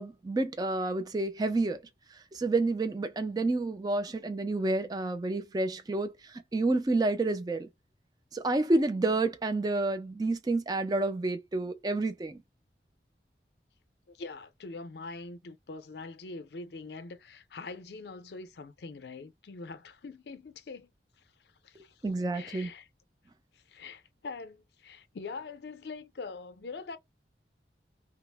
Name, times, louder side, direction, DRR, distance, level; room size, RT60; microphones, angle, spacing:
voice 1, 0.0-1.8 2.3-7.7 8.3-12.4 22.0-22.7, right 2 dB, 20° right, 0.3 m, -29 dB
voice 2, 14.1-20.9 21.6-22.0 22.3-22.9 23.5-27.0, left 3 dB, 65° left, 0.5 m, -43 dB
2.9 x 2.0 x 3.2 m
head